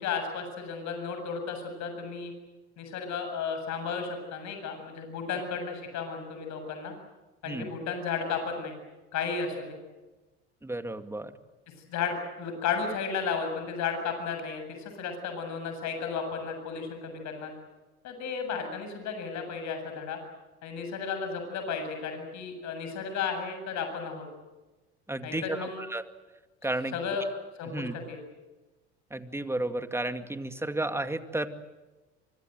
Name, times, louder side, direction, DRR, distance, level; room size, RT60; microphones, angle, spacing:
voice 1, 0.0-2.3 2.8-6.9 7.4-8.8 9.1-9.8 11.9-17.5 18.0-20.2 20.6-24.3 25.2-25.8 26.9-27.2 27.6-28.2, left 5 dB, 55° left, 6 dB, 7.6 m, -33 dB
voice 2, 10.6-11.3 25.1-26.0 26.6-26.9 27.7-27.9 29.1-31.5, right 2 dB, 10° right, 8 dB, 2.3 m, -32 dB
25.0 x 24.5 x 8.0 m, 1.1 s
hypercardioid pair, 80°, 33 cm